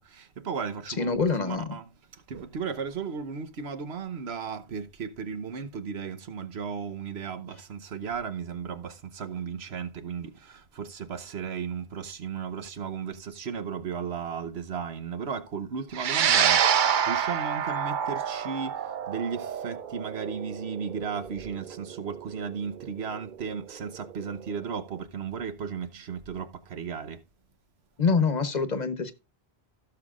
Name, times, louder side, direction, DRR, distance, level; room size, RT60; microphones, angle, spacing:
voice 1, 0.2-27.2, right 6 dB, 80° right, 1.3 m, -35 dB
voice 2, 1.0-1.7 28.0-29.1, left 4 dB, 45° left, 1.1 m, -25 dB
sound 1, 15.9-24.5, right 8 dB, 55° right, 0.7 m, -28 dB
16.5 x 6.8 x 2.5 m
omnidirectional pair, 1.1 m